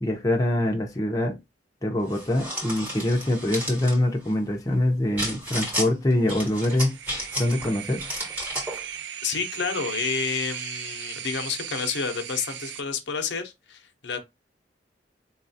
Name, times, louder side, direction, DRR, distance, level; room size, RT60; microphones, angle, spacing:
voice 1, 0.0-1.4 1.8-7.0 7.4-8.0, left 1 dB, 20° left, 0.6 m, -24 dB
sound 1, 2.1-4.0 5.2-5.9 6.3-7.7 8.0-8.8, equal, 10° right, 1.1 m, -32 dB
sound 2, 6.5-12.8, right 9 dB, 75° right, 0.4 m, -37 dB
voice 2, 9.2-14.2, left 5 dB, 90° left, 0.7 m, -30 dB
4.1 x 2.3 x 2.6 m
head